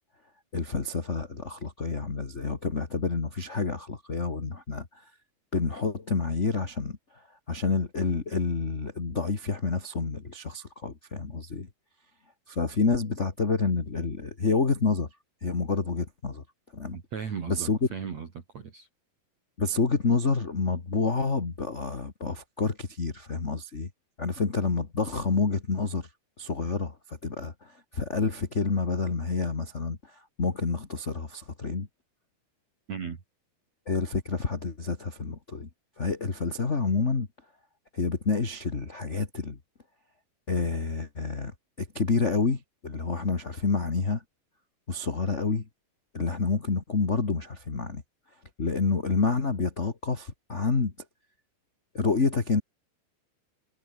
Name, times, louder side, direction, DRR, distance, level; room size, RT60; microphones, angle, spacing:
voice 1, 0.5-5.0 5.5-7.0 7.5-11.7 12.5-15.1 15.4-16.4 16.7-17.0 17.5-17.8 19.6-23.9 24.2-26.1 26.4-31.9 33.8-35.7 36.0-37.3 37.9-39.6 40.5-44.2 44.9-45.6 46.1-48.0 48.6-50.9 51.9-52.6, left 4 dB, 35° left, 1.2 m, -28 dB
voice 2, 16.9-18.9 32.9-33.2, right 6 dB, 45° right, 3.5 m, -36 dB
omnidirectional pair, 4.7 m